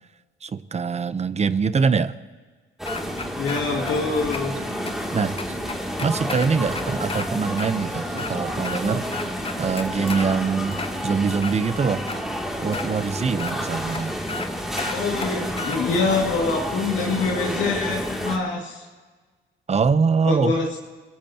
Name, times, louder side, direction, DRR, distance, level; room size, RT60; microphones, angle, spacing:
voice 1, 0.4-2.2 5.1-5.3 6.0-9.0 9.6-12.0 12.6-14.1 19.7-20.5, right 5 dB, 35° right, 14 dB, 0.8 m, -23 dB
sound 1, 2.8-18.4, equal, ahead, 2.6 m, -30 dB
sound 2, 2.9-3.9 4.3-4.4 4.9-5.0 5.4-7.3 7.6-7.7 8.1-8.8 9.1-10.3 10.7-11.6 12.1-12.2 12.7-12.9 13.4-13.5 13.9-14.0 14.3-14.5 14.8-15.8, left 4 dB, 30° left, 1.0 m, -33 dB
voice 2, 3.4-4.6 14.9-18.8 20.2-20.8, left 4 dB, 75° left, -3 dB, 2.3 m, -25 dB
28.0 x 18.0 x 2.9 m, 1.4 s
cardioid pair, 90°, 20 cm